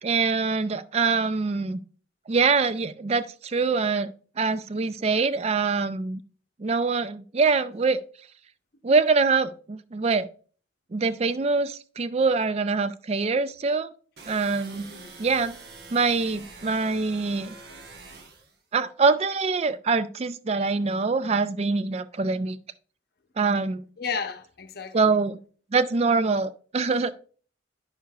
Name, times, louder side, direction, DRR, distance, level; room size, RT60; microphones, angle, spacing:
voice 1, 0.0-1.8 2.3-4.1 4.4-6.2 6.6-8.0 8.8-10.3 10.9-13.9 14.3-14.9 15.2-15.5 15.9-17.5 18.7-22.6 23.4-23.8 24.9-25.4 25.7-27.2, right 4 dB, 30° right, 0.3 m, -24 dB
sound 1, 14.2-18.6, right 3 dB, 55° right, 1.0 m, -45 dB
voice 2, 14.7-15.1 24.0-25.2, left 6 dB, 50° left, 0.7 m, -34 dB
10.0 x 6.4 x 2.3 m
head